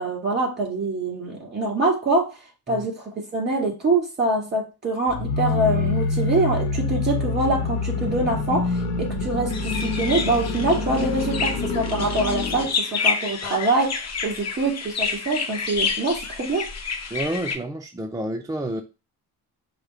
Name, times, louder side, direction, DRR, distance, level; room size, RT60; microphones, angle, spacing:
voice 1, 0.0-2.3 2.7-16.7, right 2 dB, 25° right, 0 dB, 2.3 m, -24 dB
sound 1, 5.1-12.8, left 3 dB, 90° left, 0.8 m, -26 dB
sound 2, 9.5-17.6, left 5 dB, 40° left, 0.8 m, -29 dB
voice 2, 17.1-18.8, right 1 dB, 10° right, 3 dB, 0.3 m, -29 dB
4.9 x 2.1 x 4.4 m, 0.30 s
cardioid pair, 100°, 38 cm